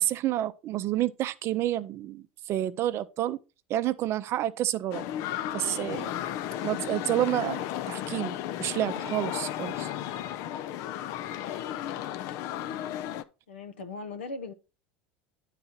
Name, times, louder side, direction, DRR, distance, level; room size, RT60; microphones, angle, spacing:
voice 1, 0.0-3.4 3.7-5.1 5.5-6.1 6.6-9.9, right 13 dB, 50° right, 0.5 m, -29 dB
sound 1, 4.9-13.2, left 11 dB, 60° left, 0.5 m, -34 dB
voice 2, 13.5-14.5, left 3 dB, 90° left, 0.8 m, -38 dB
9.7 x 4.1 x 4.1 m
hypercardioid pair, 90°, 6 cm